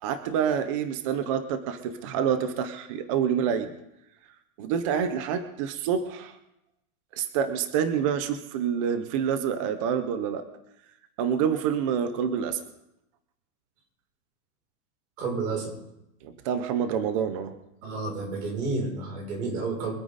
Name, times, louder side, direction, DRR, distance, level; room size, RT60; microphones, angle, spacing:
voice 1, 0.0-3.7 4.6-6.4 7.1-10.4 11.2-12.6 16.2-17.5, right 8 dB, 25° right, 10 dB, 0.5 m, -27 dB
voice 2, 15.2-15.7 17.8-19.9, right 3 dB, 85° right, 1 dB, 6.4 m, -31 dB
24.0 x 9.2 x 4.0 m, 0.83 s
supercardioid pair, 170°, 44 cm